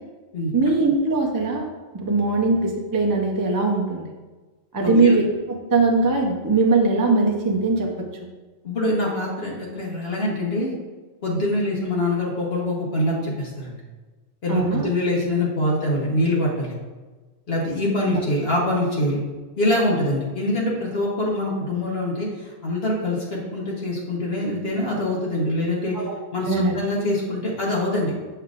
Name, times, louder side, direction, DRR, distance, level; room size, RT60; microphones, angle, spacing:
voice 1, 0.5-1.7 1.9-4.1 4.7-8.0 14.5-14.9 18.1-18.2 25.9-26.1 26.5-26.8, right 3 dB, 20° right, 0 dB, 0.6 m, -21 dB
voice 2, 4.8-5.2 8.6-10.7 11.2-13.7 14.4-16.7 17.5-19.2 19.6-26.1 26.3-28.1, left 1 dB, 60° left, -4 dB, 1.4 m, -24 dB
7.7 x 5.6 x 2.5 m, 1.3 s
omnidirectional pair, 1.2 m